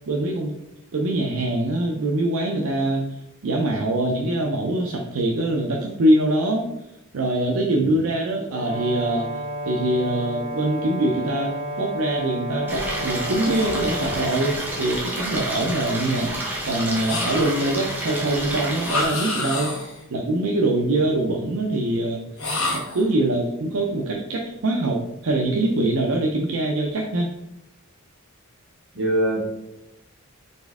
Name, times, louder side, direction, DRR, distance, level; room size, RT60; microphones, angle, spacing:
voice 1, 0.1-0.5 0.9-3.1 3.4-6.7 7.1-16.3 16.6-19.7 20.1-22.2 22.7-27.3, right 1 dB, 85° right, 0 dB, 0.5 m, -23 dB
Brass instrument, 8.5-14.3, equal, 30° right, 1.5 m, -31 dB
Stream, 12.7-19.0, right 1 dB, 10° right, 0.9 m, -29 dB
sound 1, 17.0-17.8 18.8-20.0 22.4-23.1, left 2 dB, 90° left, 1.1 m, -28 dB
voice 2, 28.9-29.4, right 1 dB, 65° right, -4 dB, 1.6 m, -23 dB
4.2 x 3.4 x 3.5 m, 0.86 s
head